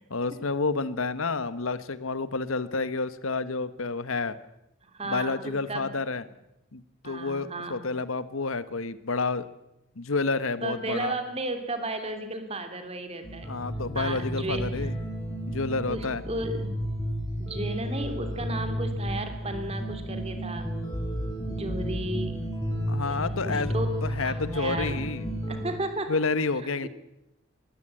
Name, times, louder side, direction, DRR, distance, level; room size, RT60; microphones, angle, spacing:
voice 1, 0.1-4.4 5.0-6.2 6.7-9.5 10.0-11.1 13.5-15.0 15.5-16.2 22.9-23.7 24.0-25.3 26.1-26.9, left 3 dB, 75° left, 14 dB, 1.1 m, -29 dB
voice 2, 4.8-5.9 7.0-7.8 10.6-13.5 13.9-14.9 15.9-16.7 17.4-20.7 21.5-22.4 23.1-25.1 25.5-26.1 26.8-26.9, right 2 dB, 30° right, 7 dB, 2.8 m, -34 dB
sound 1, 13.2-25.7, equal, 20° left, 5.2 m, -32 dB
21.5 x 16.0 x 8.9 m, 0.86 s
head